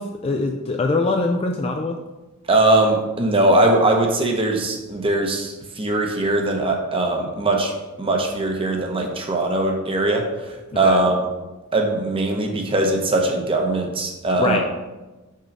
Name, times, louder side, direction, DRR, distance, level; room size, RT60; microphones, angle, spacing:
voice 1, 0.0-2.0 10.7-11.0 14.4-14.6, left 3 dB, 25° left, 3 dB, 0.3 m, -23 dB
voice 2, 2.5-7.7 8.0-11.2 11.7-14.6, right 2 dB, 25° right, 2 dB, 0.8 m, -20 dB
5.6 x 3.8 x 5.2 m, 1.1 s
head